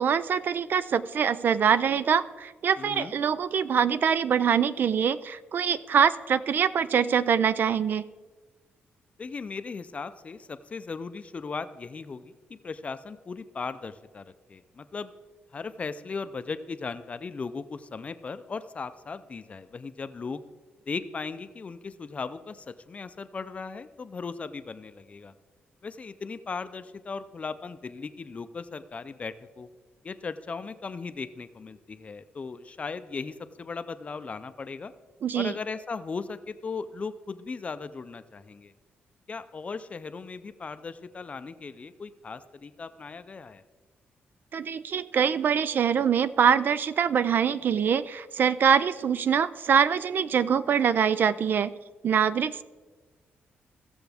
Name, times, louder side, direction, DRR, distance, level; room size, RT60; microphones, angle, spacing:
voice 1, 0.0-8.0 35.2-35.5 44.5-51.7 52.0-52.6, right 7 dB, 55° right, 15 dB, 0.4 m, -24 dB
voice 2, 2.8-3.1 9.2-15.1 15.5-20.4 20.9-25.3 25.8-29.7 30.0-34.9 35.3-38.7 39.3-43.6, left 4 dB, 35° left, 12 dB, 0.5 m, -37 dB
16.0 x 7.0 x 3.5 m, 1.3 s
cardioid pair, 120°, 4 cm